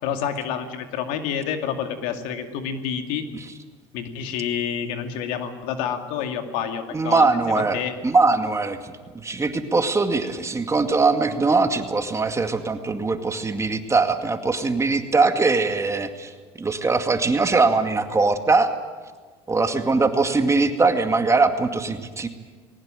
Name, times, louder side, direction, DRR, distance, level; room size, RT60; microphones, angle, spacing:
voice 1, 0.0-3.3 3.9-7.9, left 8 dB, 75° left, 6 dB, 2.4 m, -28 dB
voice 2, 6.9-16.3 16.6-18.7 19.5-22.3, right 3 dB, 20° right, 7 dB, 2.1 m, -21 dB
20.0 x 18.0 x 9.1 m, 1.5 s
supercardioid pair, 85°, 14 cm